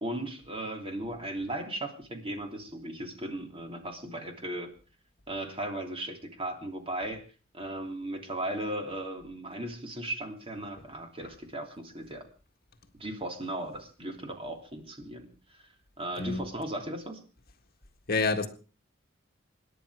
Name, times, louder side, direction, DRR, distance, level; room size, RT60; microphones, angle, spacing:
voice 1, 0.0-4.7 5.3-7.2 7.5-12.2 13.0-15.6 16.0-17.2, right 1 dB, 25° right, 3.1 m, -37 dB
voice 2, 18.1-18.5, left 3 dB, 50° left, 1.7 m, -27 dB
26.5 x 11.0 x 4.9 m
head